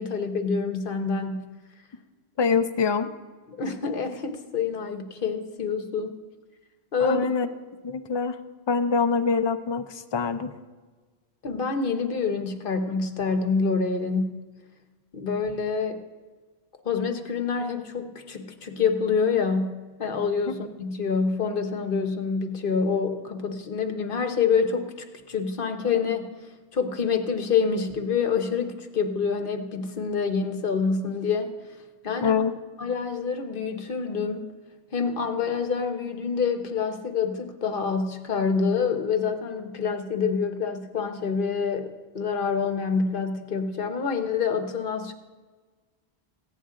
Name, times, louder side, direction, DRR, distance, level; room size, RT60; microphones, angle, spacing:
voice 1, 0.0-1.4 3.5-6.1 6.9-7.3 11.4-14.4 15.1-16.0 16.8-26.3 26.7-31.5 32.0-32.4 32.8-34.5 34.9-45.1, left 5 dB, 55° left, 7 dB, 1.0 m, -27 dB
voice 2, 2.4-3.1 7.0-7.5 7.8-8.4 8.7-10.5 20.5-20.6 32.2-32.5, left 5 dB, 35° left, 9 dB, 0.4 m, -24 dB
15.5 x 9.5 x 3.7 m, 1.3 s
omnidirectional pair, 1.1 m